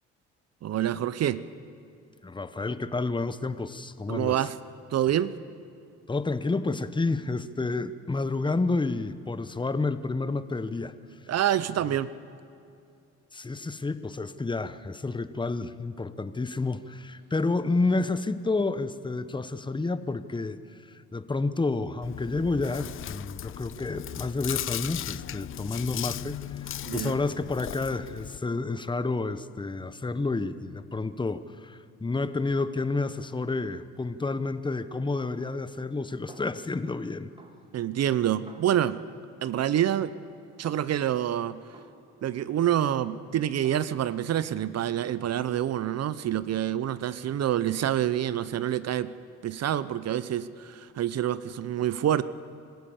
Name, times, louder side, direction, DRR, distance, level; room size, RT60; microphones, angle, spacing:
voice 1, 0.6-1.4 4.1-4.5 4.9-5.3 11.3-12.1 26.8-27.2 37.7-39.0 39.4-40.1 40.6-41.6 42.2-49.1 49.4-52.2, right 11 dB, 55° right, 16 dB, 0.7 m, -27 dB
voice 2, 2.2-4.5 6.1-10.9 13.3-20.6 21.1-37.3, left 3 dB, 15° left, 13 dB, 1.0 m, -30 dB
Chewing mastication, 22.0-28.4, left 12 dB, 45° left, 0.4 m, -37 dB
Snare drum, 35.2-36.0 36.3-37.0 37.4-39.2 39.6-41.2 41.7-43.3 43.6-43.9, right 2 dB, 15° right, 2.3 m, -54 dB
26.0 x 15.0 x 7.2 m, 2.5 s
supercardioid pair, 75°, 31 cm